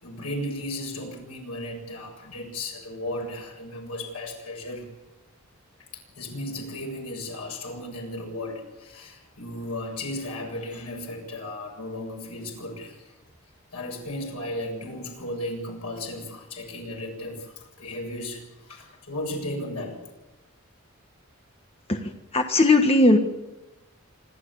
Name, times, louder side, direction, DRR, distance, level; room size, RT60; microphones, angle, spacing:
voice 1, 0.0-4.9 6.2-13.1 13.7-20.0, left 1 dB, 90° left, 1 dB, 7.2 m, -35 dB
voice 2, 22.3-23.2, left 2 dB, 25° left, 5 dB, 1.3 m, -17 dB
26.5 x 13.0 x 8.6 m, 1.0 s
head